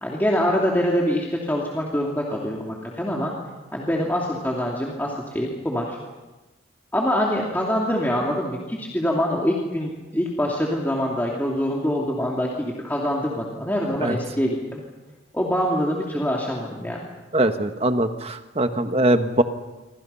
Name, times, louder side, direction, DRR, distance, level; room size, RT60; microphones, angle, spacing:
voice 1, 0.0-3.3 3.7-6.0 6.9-14.8 15.3-17.0, equal, 10° left, -3 dB, 2.8 m, -24 dB
voice 2, 17.3-19.4, right 1 dB, 30° right, 7 dB, 1.5 m, -21 dB
27.5 x 26.0 x 5.7 m, 1.2 s
head